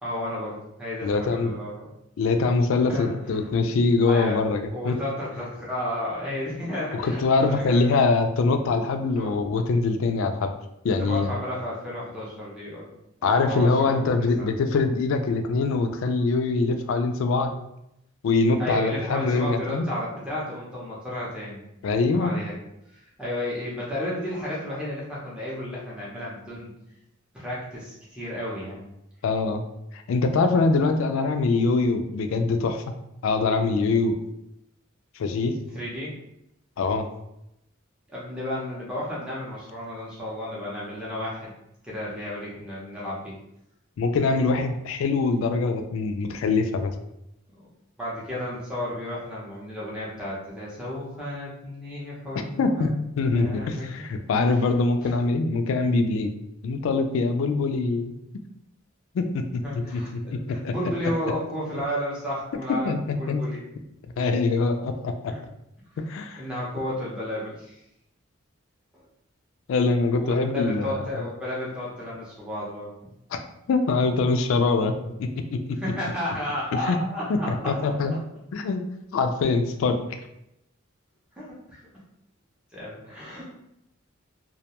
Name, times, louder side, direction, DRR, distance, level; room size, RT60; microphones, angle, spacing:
voice 1, 0.0-1.9 2.9-3.4 4.1-4.4 4.7-7.8 9.1-9.3 11.0-12.9 13.2-14.5 18.6-22.6 22.9-26.7 27.3-28.9 35.7-36.1 38.1-41.5 41.8-43.3 48.0-53.0 53.3-54.1 54.6-54.7 59.6-63.6 65.3-65.4 66.4-67.8 70.2-73.1 75.8-77.7 81.4-81.8 82.7-83.4, left 1 dB, 5° right, -7 dB, 0.6 m, -33 dB
voice 2, 1.0-1.5 2.2-5.0 6.9-10.5 10.8-11.3 13.2-17.5 18.2-19.9 21.8-22.3 29.2-29.6 29.9-32.8 33.2-34.2 35.2-35.5 36.8-37.1 44.0-46.9 52.6-56.3 56.6-58.1 59.1-59.6 59.9-60.0 60.3-60.7 62.8-63.5 64.2-65.3 66.1-66.4 69.7-71.2 73.3-73.4 73.7-75.6 76.8-77.0 77.3-78.2 78.5-78.8 79.1-80.0, left 3 dB, 70° left, 7 dB, 0.3 m, -23 dB
2.2 x 2.1 x 2.8 m, 0.82 s
head